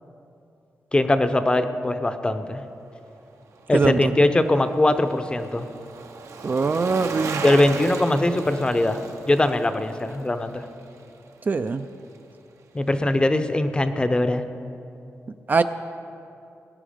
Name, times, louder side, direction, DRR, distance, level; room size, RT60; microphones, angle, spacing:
voice 1, 0.9-2.6 3.7-5.7 7.4-10.7 12.7-14.4, left 1 dB, 20° left, 9 dB, 0.7 m, -21 dB
Bicycle, 3.4-11.8 12.1-12.2, right 4 dB, 80° right, 1.0 m, -37 dB
voice 2, 3.7-4.1 6.4-7.4 11.5-11.9 15.5-15.6, right 4 dB, 35° right, 10 dB, 0.4 m, -22 dB
20.0 x 9.7 x 5.1 m, 2.7 s
wide cardioid pair, 135°, 5 cm